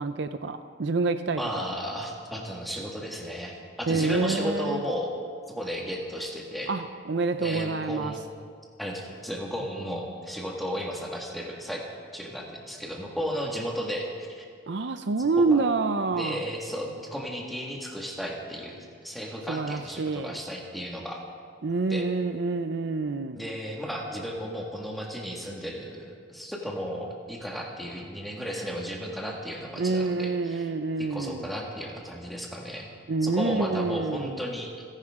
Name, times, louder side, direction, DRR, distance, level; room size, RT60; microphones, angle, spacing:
voice 1, 0.0-1.7 3.9-4.8 6.7-8.1 14.7-16.4 19.5-20.4 21.6-23.4 29.8-31.5 33.1-34.4, right 3 dB, 60° right, 10 dB, 0.5 m, -27 dB
voice 2, 1.4-6.7 7.4-8.2 8.8-11.8 12.1-14.1 14.4-14.5 15.2-15.6 16.1-21.2 21.9-22.0 23.3-30.7 31.0-32.9 33.2-34.7, equal, ahead, -1 dB, 1.8 m, -34 dB
29.5 x 11.0 x 3.7 m, 2.2 s
head